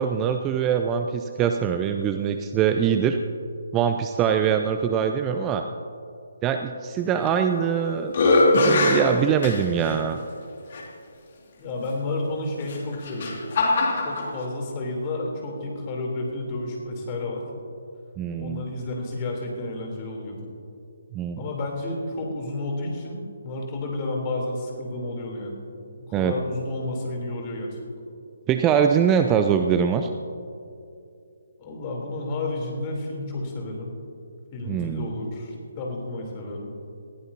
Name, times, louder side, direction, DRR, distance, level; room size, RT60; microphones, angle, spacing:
voice 1, 0.0-3.2 3.7-5.6 6.4-8.1 8.5-10.2 18.2-18.6 21.1-21.4 26.1-26.3 28.5-30.1 34.7-35.2, right 8 dB, 20° right, 6 dB, 0.5 m, -23 dB
sound 1, 7.3-7.7 8.1-10.0 10.7-10.8 12.6-14.3, left 2 dB, 45° left, 2.3 m, -21 dB
voice 2, 11.6-13.3 13.9-17.5 18.4-20.4 21.3-25.6 26.0-27.8 31.6-33.9 34.5-36.7, left 2 dB, 30° left, 0 dB, 3.4 m, -31 dB
20.0 x 15.0 x 2.8 m, 2.5 s
figure-of-eight pair, 140°, 0 cm